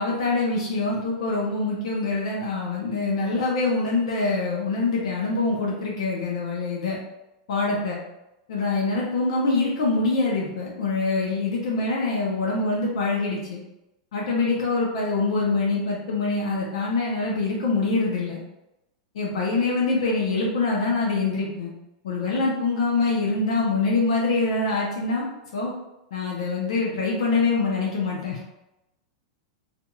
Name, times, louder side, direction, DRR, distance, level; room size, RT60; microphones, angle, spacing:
voice 1, 0.0-7.0 7.5-8.0 8.5-13.6 14.1-18.4 19.1-21.7 22.0-25.3 25.5-25.7 26.1-28.4, left 3 dB, 70° left, -3 dB, 0.6 m, -24 dB
2.7 x 2.5 x 2.3 m, 0.93 s
hypercardioid pair, 105°, 3 cm